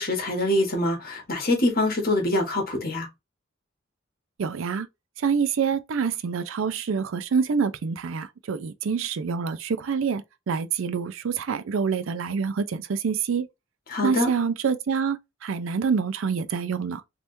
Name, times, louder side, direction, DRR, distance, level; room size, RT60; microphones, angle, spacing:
voice 1, 0.0-3.1 13.9-14.3, left 1 dB, 45° left, 1.4 m, -24 dB
voice 2, 4.4-4.9 5.2-13.5 14.0-17.0, right 6 dB, 75° right, 0.4 m, -26 dB
3.4 x 2.9 x 2.6 m
head